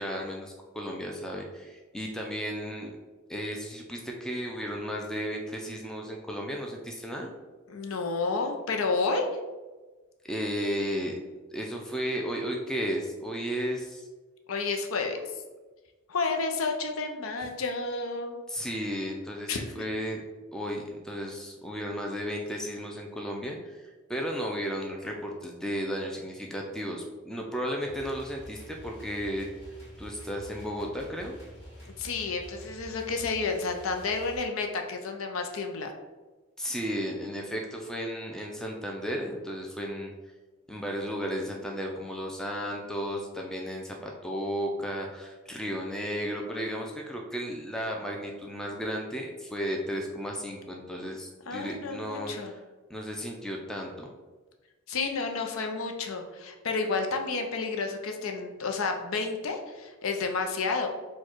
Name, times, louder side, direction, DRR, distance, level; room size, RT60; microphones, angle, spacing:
voice 1, 0.0-3.0 3.3-7.3 10.3-11.1 11.5-14.1 18.5-20.2 20.5-29.5 30.0-31.4 36.6-40.1 40.7-52.6 52.9-54.1, equal, 5° left, 0 dB, 0.4 m, -34 dB
voice 2, 7.7-9.4 14.5-15.2 16.1-18.4 19.5-19.6 31.8-35.9 51.5-52.5 54.9-60.9, left 4 dB, 75° left, 4 dB, 0.6 m, -30 dB
sound 1, 27.8-34.4, equal, 50° left, 1.5 m, -48 dB
4.5 x 2.3 x 4.4 m, 1.3 s
head